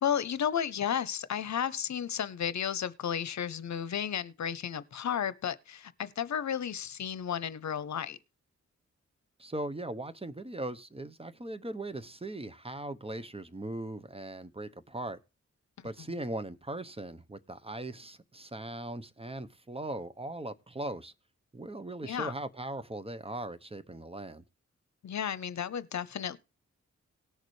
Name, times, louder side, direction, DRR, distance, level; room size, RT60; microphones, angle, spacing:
voice 1, 0.0-8.2 15.8-15.9 22.0-22.3 25.0-26.4, left 8 dB, 70° left, 0.8 m, -33 dB
voice 2, 9.4-15.2 15.8-21.1 21.5-24.4, right 1 dB, 20° right, 0.9 m, -39 dB
18.5 x 6.6 x 3.2 m
cardioid pair, 80°, 29 cm